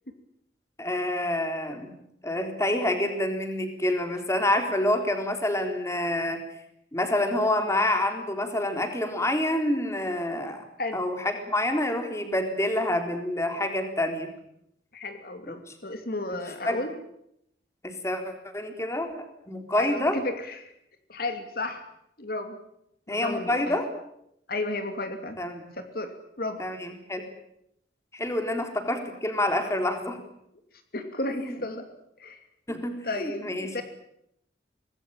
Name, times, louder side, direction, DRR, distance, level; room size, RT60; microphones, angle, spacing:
voice 1, 0.8-1.9 2.2-6.4 6.9-10.6 10.9-14.3 15.5-15.6 16.7-16.8 17.8-20.2 23.1-23.8 25.4-25.5 26.6-27.2 28.1-30.2 31.3-31.6 32.7-33.7, left 1 dB, 15° left, 6 dB, 3.7 m, -27 dB
voice 2, 14.9-16.9 19.8-20.7 21.1-21.9 22.2-22.6 23.1-23.8 24.5-25.4 25.7-26.6 30.9-31.9 32.2-32.4 33.0-33.8, left 2 dB, 55° left, 7 dB, 2.7 m, -33 dB
25.0 x 20.0 x 9.1 m, 0.77 s
head